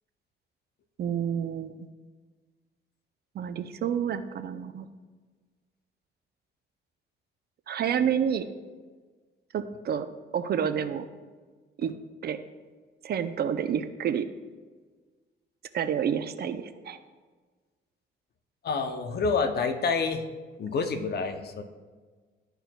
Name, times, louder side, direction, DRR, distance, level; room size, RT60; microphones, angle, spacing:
voice 1, 1.0-1.9 3.3-4.9 7.7-8.5 9.5-10.1 10.3-11.1 11.8-11.9 12.2-12.4 13.0-14.3 15.7-17.0, right 8 dB, 55° right, 10 dB, 0.5 m, -29 dB
voice 2, 18.6-20.2 20.6-21.6, left 4 dB, 55° left, 8 dB, 0.7 m, -28 dB
12.5 x 4.5 x 2.3 m, 1.4 s
cardioid pair, 90°, 20 cm